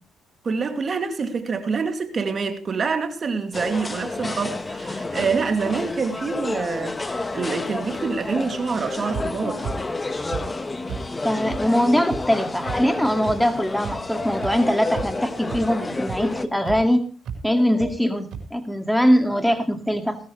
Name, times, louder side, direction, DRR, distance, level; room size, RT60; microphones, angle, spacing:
voice 1, 0.4-9.7, right 5 dB, 40° right, 2.6 m, -26 dB
sound 1, 3.5-16.5, left 2 dB, 25° left, 1.4 m, -30 dB
sound 2, 9.1-9.2 9.6-9.7 10.3-10.4 10.9-11.0 11.5-11.6 12.1-12.2 12.7-12.8 13.3-13.4 13.8-13.9 14.4-14.5 14.9-15.2 15.5-15.6 16.1-16.2 16.7-16.8 17.2-17.4 17.8-17.9 18.3-18.4, right 8 dB, 75° right, 4.9 m, -31 dB
voice 2, 11.2-17.0 17.4-20.2, equal, 5° left, 2.3 m, -22 dB
19.0 x 13.5 x 3.3 m
cardioid pair, 90°, 0 cm